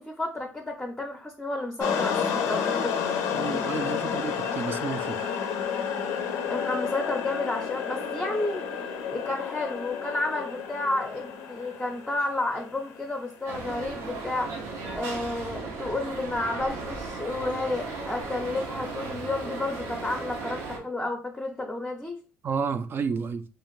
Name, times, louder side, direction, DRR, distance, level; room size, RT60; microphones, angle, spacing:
voice 1, 0.0-2.9 6.5-8.6 9.1-14.5 14.9-22.2, left 2 dB, 10° left, 0.5 m, -31 dB
sound 1, 1.8-13.3, left 7 dB, 85° left, 0.4 m, -30 dB
voice 2, 3.3-5.2 22.4-23.4, right 5 dB, 45° right, 0.3 m, -31 dB
sound 2, 13.5-20.8, right 3 dB, 90° right, 0.7 m, -36 dB
2.5 x 2.4 x 3.0 m
supercardioid pair, 80°, 5 cm